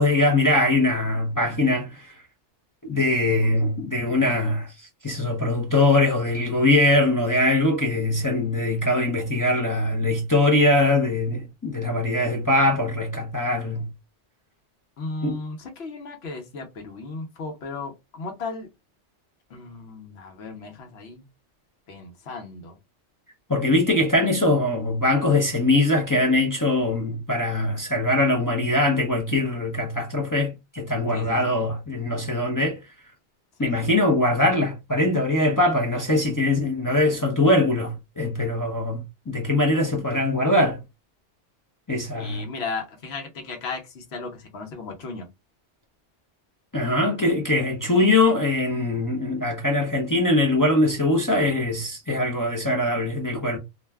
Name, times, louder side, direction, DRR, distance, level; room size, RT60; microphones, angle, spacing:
voice 1, 0.0-2.1 2.8-13.9 15.2-15.4 23.5-32.8 33.6-40.8 41.9-42.5 46.7-53.6, left 2 dB, 30° left, 0.3 m, -22 dB
voice 2, 3.4-4.4 15.0-18.7 19.5-21.2 21.9-22.7 31.1-31.7 33.6-33.7 42.1-45.3, left 3 dB, 65° left, 0.9 m, -36 dB
2.5 x 2.2 x 3.3 m
omnidirectional pair, 1.2 m